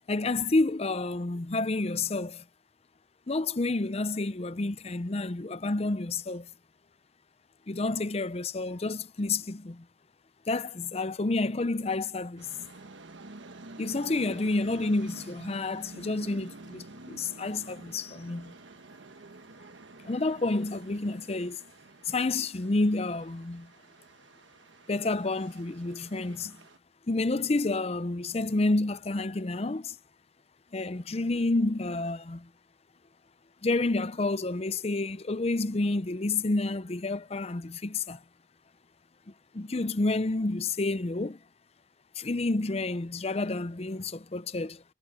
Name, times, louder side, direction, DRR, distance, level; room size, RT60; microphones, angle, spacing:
voice 1, 0.1-2.4 3.3-6.5 7.7-9.9 10.5-12.5 13.8-18.5 20.0-21.6 22.0-23.7 24.9-26.6 27.1-30.0 30.7-32.5 33.6-38.2 39.5-41.4 42.2-44.8, left 2 dB, 35° left, 0.6 m, -29 dB
sound 1, 12.4-26.8, right 2 dB, 80° right, 1.3 m, -49 dB
head